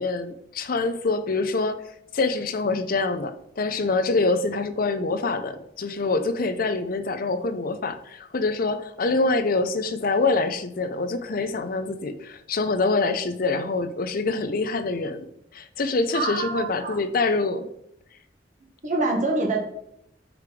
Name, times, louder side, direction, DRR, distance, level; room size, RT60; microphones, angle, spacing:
voice 1, 0.0-1.8 2.1-15.2 15.5-17.7, left 3 dB, 50° left, 9 dB, 0.6 m, -25 dB
voice 2, 16.1-17.0 17.6-17.7 18.8-19.6, right 2 dB, 45° right, 0 dB, 1.4 m, -26 dB
5.0 x 5.0 x 4.9 m, 0.74 s
head